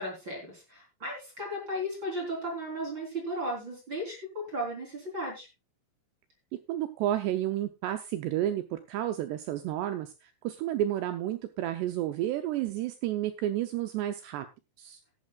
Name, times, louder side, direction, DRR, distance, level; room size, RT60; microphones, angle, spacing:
voice 1, 0.0-5.5, equal, 25° right, 0 dB, 3.8 m, -35 dB
voice 2, 6.5-14.5 14.8-15.0, right 12 dB, 80° right, 9 dB, 2.5 m, -31 dB
15.0 x 12.0 x 2.3 m, 0.26 s
omnidirectional pair, 5.5 m